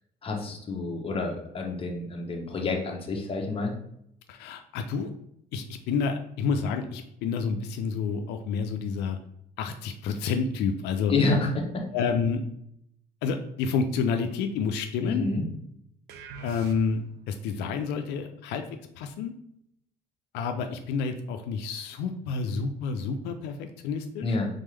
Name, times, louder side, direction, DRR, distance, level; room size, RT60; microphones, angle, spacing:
voice 1, 0.2-3.7 11.1-11.9 15.0-15.4 24.2-24.5, left 3 dB, 35° left, 2 dB, 0.9 m, -28 dB
voice 2, 4.3-5.1 5.5-9.2 9.6-11.1 11.9-12.4 13.2-15.3 16.4-18.6 19.0-19.3 20.3-24.4, left 5 dB, 90° left, 6 dB, 0.4 m, -29 dB
sound 1, 16.1-17.2, right 5 dB, 85° right, 0.5 m, -43 dB
3.7 x 3.5 x 3.2 m, 0.75 s
cardioid pair, 110°, 17 cm